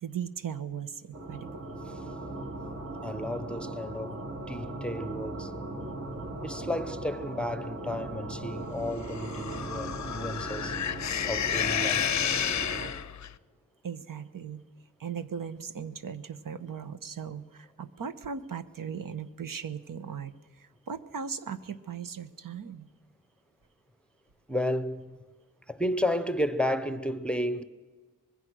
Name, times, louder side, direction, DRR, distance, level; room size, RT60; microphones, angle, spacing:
voice 1, 0.0-1.5 13.8-14.6 15.0-22.9, right 7 dB, 70° right, 1.1 m, -38 dB
sound 1, 1.1-12.9, right 2 dB, 55° right, 3.6 m, -38 dB
voice 2, 3.0-4.2 4.5-5.5 6.4-10.8 11.3-12.1 24.5-25.2 25.7-27.6, left 1 dB, 5° left, 0.8 m, -32 dB
sound 2, 9.0-13.3, left 9 dB, 55° left, 0.6 m, -31 dB
25.0 x 21.0 x 6.3 m
wide cardioid pair, 150°, 34 cm